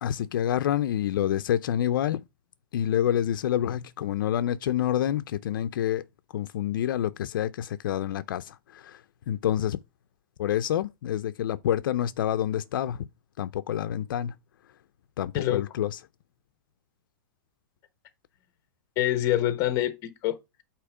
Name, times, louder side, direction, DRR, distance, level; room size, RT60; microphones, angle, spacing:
voice 1, 0.0-2.2 2.7-6.1 6.3-9.8 10.4-13.1 13.4-14.3 15.2-16.0, left 11 dB, 75° left, 0.5 m, -27 dB
voice 2, 19.0-20.6, left 13 dB, 25° left, 0.9 m, -26 dB
8.5 x 2.9 x 4.8 m
supercardioid pair, 165°, 11 cm